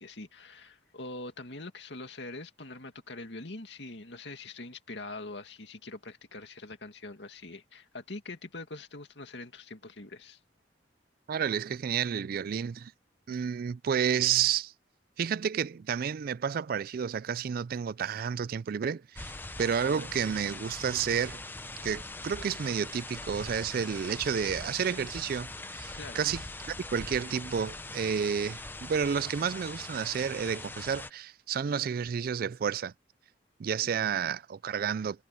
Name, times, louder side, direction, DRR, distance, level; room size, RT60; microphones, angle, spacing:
voice 1, 0.0-10.4 13.3-13.4 26.0-26.2 33.8-34.1, left 2 dB, 70° left, 2.3 m, -43 dB
voice 2, 11.3-12.9 13.3-14.7 15.2-19.3 19.6-21.4 21.8-26.4 26.7-32.9 33.6-35.3, right 7 dB, 50° right, 0.3 m, -31 dB
sound 1, 19.2-31.1, left 2 dB, 10° left, 0.8 m, -42 dB
head